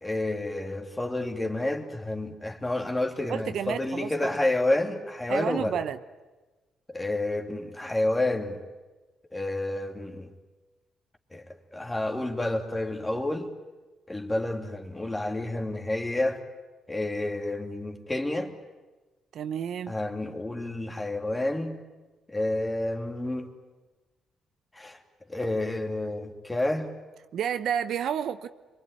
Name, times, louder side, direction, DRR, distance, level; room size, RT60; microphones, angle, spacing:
voice 1, 0.0-5.8 6.9-8.6 9.3-10.3 11.3-11.5 11.7-13.5 14.1-16.4 16.9-18.5 19.9-21.8 22.3-23.5 24.7-25.0 25.3-26.9, left 1 dB, 15° left, 2.8 m, -29 dB
voice 2, 3.3-4.3 5.3-6.0 19.3-19.9 27.3-28.5, right 8 dB, 70° right, 0.9 m, -30 dB
25.5 x 23.5 x 9.6 m
cardioid pair, 90°, 0 cm